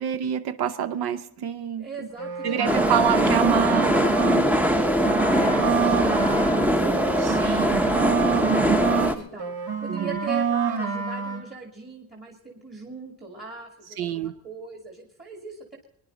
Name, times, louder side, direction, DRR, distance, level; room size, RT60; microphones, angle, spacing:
voice 1, 0.0-1.9 2.4-4.2 7.2-7.9 8.4-8.8 9.9-10.2 14.0-14.3, right 9 dB, 90° right, 11 dB, 0.8 m, -27 dB
voice 2, 1.8-3.2 4.4-15.8, right 3 dB, 25° right, -1 dB, 2.2 m, -39 dB
sound 1, 2.1-4.4 4.8-9.1 9.4-11.4, right 6 dB, 75° right, 2.4 m, -27 dB
sound 2, 2.6-9.1, equal, 5° right, 0.6 m, -22 dB
24.5 x 10.5 x 3.9 m, 0.77 s
wide cardioid pair, 160°, 37 cm